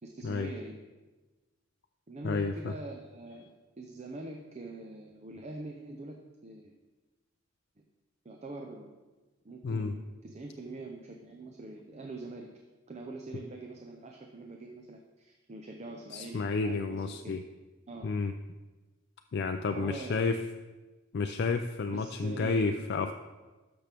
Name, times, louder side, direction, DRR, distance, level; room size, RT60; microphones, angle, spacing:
voice 1, 0.0-0.8 2.1-6.7 7.8-7.9 8.2-8.9 9.4-12.5 12.9-17.4 17.9-18.1 19.7-20.4 21.9-22.9, right 2 dB, 35° right, 2 dB, 0.6 m, -44 dB
voice 2, 2.2-2.7 9.6-9.9 16.1-17.4 18.0-18.3 19.3-20.4 21.1-23.1, left 4 dB, 55° left, 6 dB, 0.4 m, -31 dB
12.5 x 6.1 x 3.4 m, 1.2 s
head